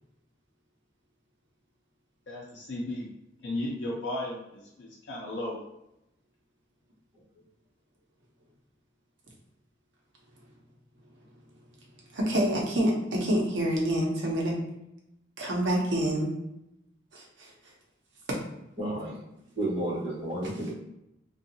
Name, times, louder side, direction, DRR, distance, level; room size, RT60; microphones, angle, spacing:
voice 1, 2.3-3.1 3.4-5.6, left 1 dB, 85° left, -4 dB, 0.5 m, -35 dB
voice 2, 11.3-14.6 15.4-16.3 17.1-17.7 18.3-18.4 20.4-20.5, equal, 90° right, -2 dB, 0.8 m, -28 dB
voice 3, 18.8-19.2 19.5-20.7, right 1 dB, 35° right, -7 dB, 1.2 m, -31 dB
2.6 x 2.3 x 2.7 m, 0.85 s
head